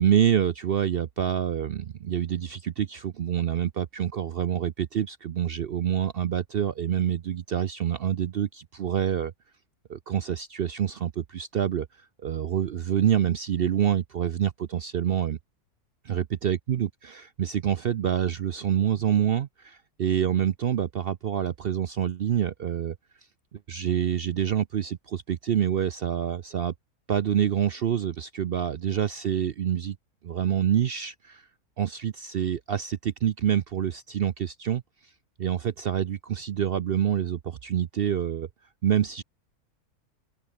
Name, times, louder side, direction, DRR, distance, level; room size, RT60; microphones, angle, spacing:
voice 1, 0.0-9.3 9.9-11.9 12.2-15.4 16.0-22.9 23.7-26.7 27.1-30.0 30.2-31.5 31.8-34.8 35.4-38.5 38.8-39.2, right 9 dB, 65° right, 0.6 m, -27 dB
omnidirectional pair, 1.7 m